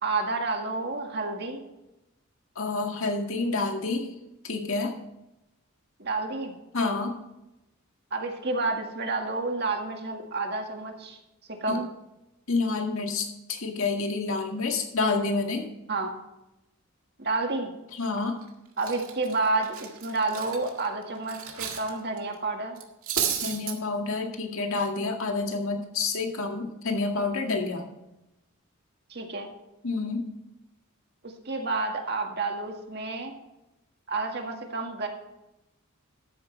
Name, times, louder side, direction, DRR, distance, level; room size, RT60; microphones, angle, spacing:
voice 1, 0.0-1.7 6.0-6.5 8.1-11.2 11.5-11.9 15.9-16.1 17.2-17.7 18.8-22.8 29.1-29.5 31.2-33.4 34.1-35.1, right 3 dB, 50° right, 3 dB, 1.9 m, -30 dB
voice 2, 2.6-4.1 4.4-4.9 6.7-7.1 11.7-11.8 12.5-15.7 18.0-18.4 23.4-27.9 29.8-30.3, left 3 dB, 65° left, 3 dB, 2.0 m, -28 dB
Cutlery silverware, 18.2-18.4 18.8-21.9 22.2-22.3 22.8-23.8, right 8 dB, 75° right, 1.9 m, -32 dB
13.5 x 10.5 x 3.4 m, 0.93 s
head